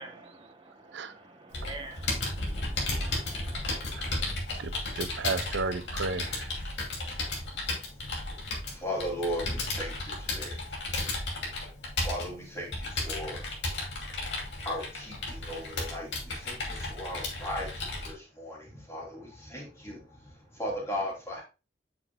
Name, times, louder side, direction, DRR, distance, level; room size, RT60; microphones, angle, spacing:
voice 1, 1.1-3.9, right 2 dB, 30° right, 1.0 m, -46 dB
Computer keyboard, 1.5-18.1, left 2 dB, 75° left, 2.5 m, -34 dB
voice 2, 4.6-6.5, right 3 dB, 90° right, 0.7 m, -33 dB
voice 3, 8.7-10.6 12.0-13.5 14.6-21.4, equal, 15° left, 2.8 m, -37 dB
7.7 x 6.1 x 2.2 m
head